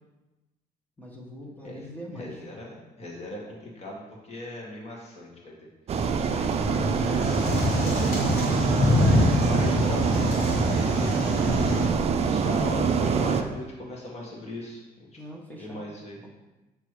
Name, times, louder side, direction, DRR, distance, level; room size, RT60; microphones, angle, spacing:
voice 1, 1.0-2.4 15.2-15.8, equal, 10° left, -2 dB, 1.2 m, -42 dB
voice 2, 2.1-5.6 6.3-6.7 7.7-8.8 9.3-11.1 12.2-15.2 15.6-16.2, left 1 dB, 40° left, -2 dB, 1.8 m, -38 dB
sound 1, 5.9-13.4, right 6 dB, 40° right, 0.5 m, -25 dB
sound 2, 6.6-11.9, left 1 dB, 60° left, 2.0 m, -25 dB
6.1 x 3.3 x 4.8 m, 1.1 s
cardioid pair, 110°, 17 cm